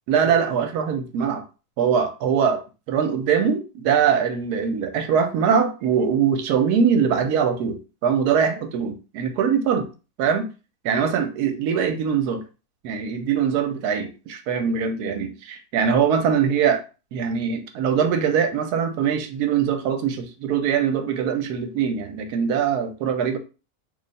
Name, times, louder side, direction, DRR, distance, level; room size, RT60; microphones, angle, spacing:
voice 1, 0.1-1.4 1.8-2.6 2.9-9.9 10.2-10.5 10.8-12.4 12.8-16.8 17.1-23.4, right 7 dB, 80° right, 7 dB, 1.2 m, -22 dB
3.3 x 2.3 x 3.9 m, 0.32 s
omnidirectional pair, 1.7 m